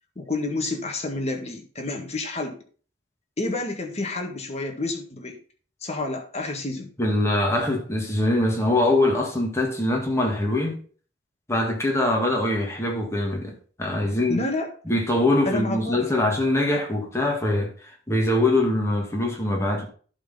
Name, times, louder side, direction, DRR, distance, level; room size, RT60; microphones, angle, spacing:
voice 1, 0.1-2.6 3.4-5.4 5.8-6.9 14.3-14.7 15.4-16.2, left 2 dB, 35° left, 1.7 m, -29 dB
voice 2, 7.0-10.8 11.5-14.5 14.9-19.9, left 1 dB, 15° left, 2.0 m, -23 dB
11.0 x 4.1 x 5.5 m
head